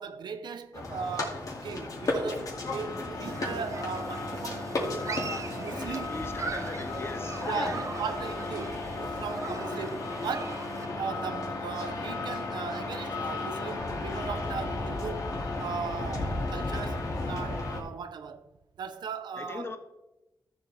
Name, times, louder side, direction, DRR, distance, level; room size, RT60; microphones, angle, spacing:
voice 1, 0.0-6.2 7.5-10.7 10.9-15.3 15.6-18.5 18.8-19.8, right 6 dB, 90° right, 0.7 m, -38 dB
sound 1, 0.7-17.8, left 2 dB, 55° left, 2.3 m, -34 dB
Human group actions, 3.2-10.9, right 4 dB, 45° right, 0.7 m, -41 dB
voice 2, 6.1-7.8 19.4-19.8, left 3 dB, 35° left, 0.9 m, -39 dB
13.5 x 7.3 x 3.4 m
wide cardioid pair, 110°, 7 cm